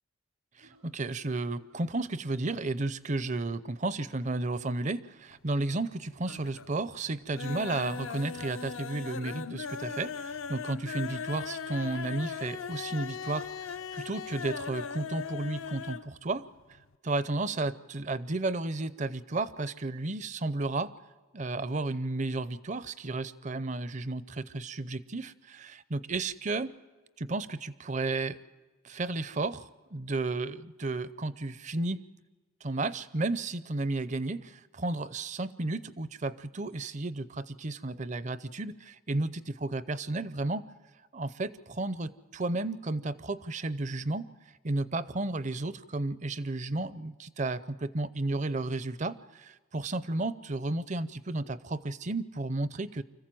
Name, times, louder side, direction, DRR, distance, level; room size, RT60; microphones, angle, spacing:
voice 1, 0.6-16.5 17.0-20.9 21.3-26.7 27.2-28.4 28.8-29.6 29.9-32.0 32.6-40.6 41.1-44.3 44.6-53.0, right 2 dB, 35° right, 15 dB, 0.5 m, -33 dB
sound 1, 0.6-14.6, right 1 dB, 90° right, 5.2 m, -60 dB
sound 2, 5.3-5.9 6.2-6.7 7.1-16.1 16.4-16.5 16.8-16.9, left 6 dB, 70° left, 0.6 m, -39 dB
25.5 x 15.0 x 7.6 m, 1.2 s
head